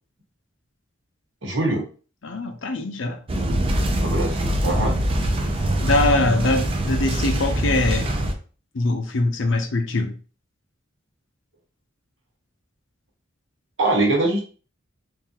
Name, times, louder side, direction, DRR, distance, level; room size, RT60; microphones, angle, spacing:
voice 1, 1.4-1.8 4.0-5.0 13.8-14.4, right 2 dB, 75° right, 1.4 m, -22 dB
voice 2, 2.2-3.2 5.8-8.1 8.7-10.2, left 2 dB, 70° left, 0.6 m, -22 dB
sound 1, 3.3-8.3, right 1 dB, 30° right, 0.5 m, -23 dB
3.8 x 2.5 x 2.8 m
head